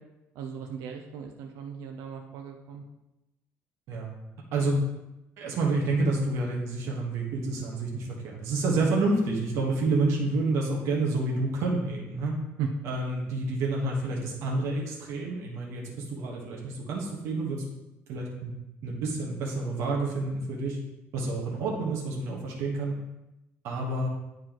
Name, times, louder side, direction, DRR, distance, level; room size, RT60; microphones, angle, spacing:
voice 1, 0.4-2.8 12.6-12.7, right 8 dB, 85° right, 3 dB, 0.6 m, -37 dB
voice 2, 5.4-12.4 12.8-17.6 18.1-18.5 18.8-20.8 21.1-22.9 23.6-24.1, right 2 dB, 70° right, -2 dB, 1.4 m, -29 dB
9.4 x 4.6 x 3.0 m, 0.94 s
cardioid pair, 155°, 5 cm